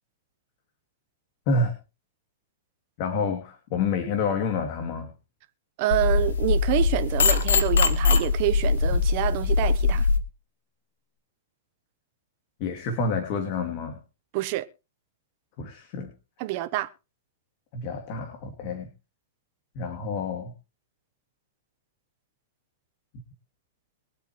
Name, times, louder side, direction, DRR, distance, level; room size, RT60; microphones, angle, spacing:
voice 1, 3.0-5.1 12.6-14.0 15.6-16.1 17.7-18.9 19.7-20.5, left 4 dB, 45° left, 2.6 m, -28 dB
voice 2, 5.8-10.1 14.3-14.7 16.4-16.9, right 16 dB, 45° right, 1.0 m, -27 dB
sound 1, 5.9-10.2, left 4 dB, 85° left, 1.6 m, -22 dB
22.5 x 8.2 x 3.1 m
hypercardioid pair, 145°, 0 cm